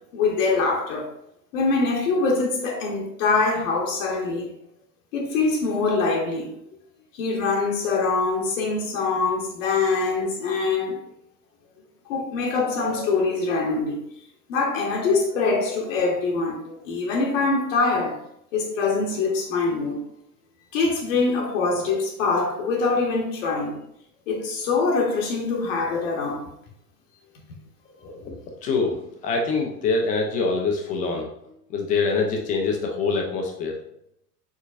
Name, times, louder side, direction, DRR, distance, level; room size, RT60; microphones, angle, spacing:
voice 1, 0.1-1.1 1.5-4.5 5.1-6.5 7.1-11.0 12.1-14.0 14.5-18.2 18.5-20.0 20.7-23.8 24.3-26.4, left 4 dB, 50° left, 1.0 m, -24 dB
voice 2, 28.0-28.4 28.6-29.0 29.2-31.3 31.7-33.7, left 4 dB, 20° left, 0.4 m, -24 dB
4.7 x 3.8 x 2.4 m
figure-of-eight pair, 90°, 49 cm